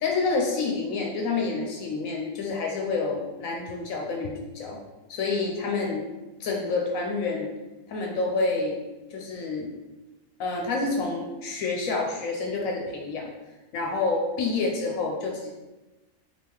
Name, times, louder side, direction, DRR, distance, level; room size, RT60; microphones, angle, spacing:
voice 1, 0.0-4.8 5.1-6.0 6.4-7.5 7.9-8.8 9.1-9.7 10.4-13.3 13.7-15.5, left 3 dB, 80° left, 0 dB, 1.1 m, -28 dB
3.6 x 2.8 x 4.4 m, 1.1 s
omnidirectional pair, 1.4 m